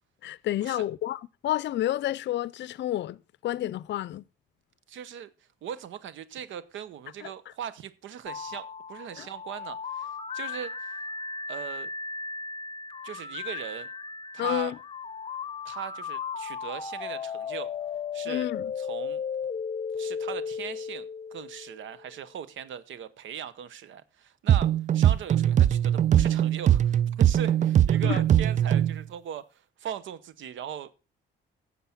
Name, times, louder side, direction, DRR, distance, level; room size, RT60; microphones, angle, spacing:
voice 1, 0.2-4.2 7.2-7.3 9.2-9.3 14.4-14.7 18.3-18.7 28.0-28.2, left 13 dB, 65° left, 0.5 m, -30 dB
voice 2, 4.9-11.0 11.5-11.9 13.0-13.9 14.3-14.7 15.6-17.7 18.1-18.5 18.8-19.2 20.0-30.9, right 9 dB, 75° right, 0.9 m, -39 dB
sound 1, 8.3-22.1, left 5 dB, 30° left, 0.9 m, -36 dB
sound 2, 24.5-29.0, right 10 dB, 40° right, 0.4 m, -21 dB
9.5 x 7.6 x 5.8 m
cardioid pair, 90°, 20 cm